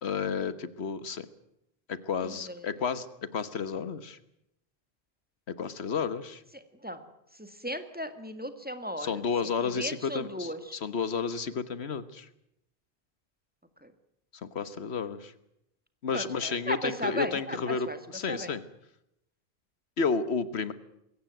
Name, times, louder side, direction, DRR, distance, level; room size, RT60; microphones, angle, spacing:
voice 1, 0.0-1.3 1.9-3.1 3.3-4.2 5.6-6.4 9.0-12.3 14.4-15.3 16.0-18.6 20.0-20.7, left 5 dB, 85° left, 14 dB, 1.5 m, -31 dB
voice 2, 2.2-2.7 6.8-7.0 7.4-9.2 9.6-10.8 13.8-13.9 16.1-18.0 18.3-18.5, equal, 10° right, 9 dB, 1.9 m, -36 dB
22.0 x 17.0 x 9.1 m, 0.81 s
omnidirectional pair, 1.1 m